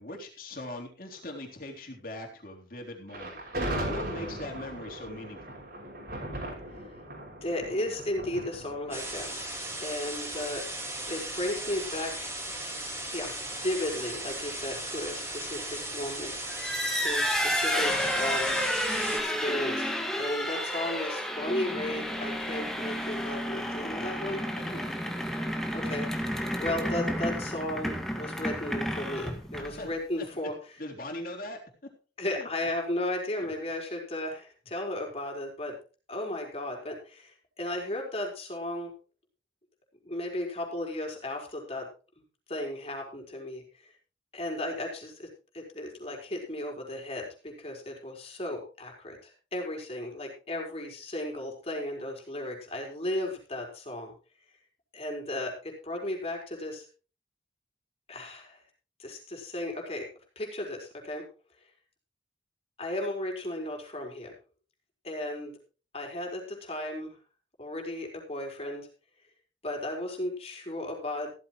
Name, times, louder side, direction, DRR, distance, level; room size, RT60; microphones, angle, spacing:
voice 1, 0.0-3.4 3.8-5.4 24.6-24.8 29.6-29.9 30.2-30.3 30.8-31.6 32.4-32.5 33.4-33.5, left 1 dB, 50° left, 1 dB, 3.5 m, -40 dB
Thunder, 3.1-10.3, right 1 dB, 55° right, 6.1 m, -38 dB
voice 2, 7.4-9.5 9.8-10.7 11.1-12.4 13.1-18.6 19.2-24.4 25.7-26.1 26.3-30.8 32.2-35.8 36.1-38.9 40.0-41.9 42.5-43.9 44.3-45.3 45.5-54.1 54.9-56.9 58.1-58.6 59.0-60.0 60.4-61.2 62.8-64.3 65.0-65.5 65.9-67.2 67.6-68.9 69.6-71.3, left 1 dB, 35° left, 1 dB, 4.5 m, -35 dB
sound 1, 8.9-19.2, right 1 dB, 15° right, 4.4 m, -37 dB
sound 2, 16.5-29.9, equal, ahead, 1.9 m, -31 dB
15.5 x 14.0 x 3.1 m, 0.35 s
head